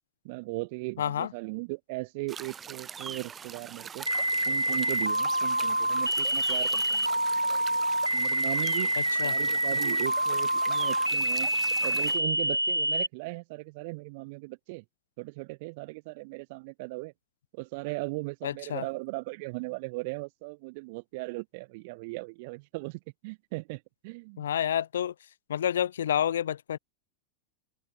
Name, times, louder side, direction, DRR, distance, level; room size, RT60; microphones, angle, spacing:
voice 1, 0.2-4.1 4.5-7.1 8.1-9.0 9.2-11.5 11.8-14.8 15.2-17.1 17.5-24.4, right 27 dB, 50° right, 5.9 m, -38 dB
voice 2, 1.0-1.3 9.0-9.3 18.4-18.8 24.4-25.1 25.5-26.8, left 10 dB, 65° left, 3.4 m, -29 dB
sound 1, 2.3-12.2, right 7 dB, 20° right, 2.6 m, -42 dB
sound 2, 4.1-13.1, right 1 dB, 85° right, 1.0 m, -27 dB
figure-of-eight pair, 90°, 0 cm